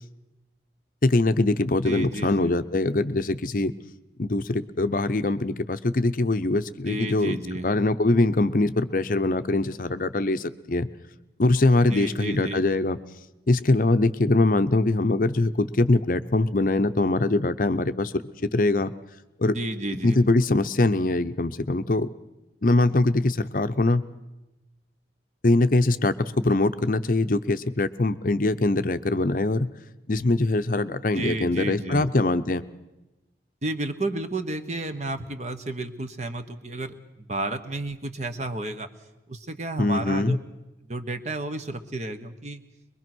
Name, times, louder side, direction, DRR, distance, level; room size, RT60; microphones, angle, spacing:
voice 1, 1.0-3.7 4.2-7.4 7.6-10.9 11.4-13.0 13.5-18.1 18.5-18.9 19.4-19.6 20.0-22.1 22.6-24.0 25.4-29.7 30.1-32.6 39.8-40.4, left 2 dB, 50° left, 11 dB, 0.7 m, -22 dB
voice 2, 1.8-2.5 6.9-7.7 11.9-12.6 19.5-20.2 31.1-32.1 33.6-38.9 39.3-40.4 40.9-42.6, right 2 dB, 40° right, 8 dB, 1.2 m, -31 dB
22.5 x 22.5 x 6.2 m, 1.0 s
head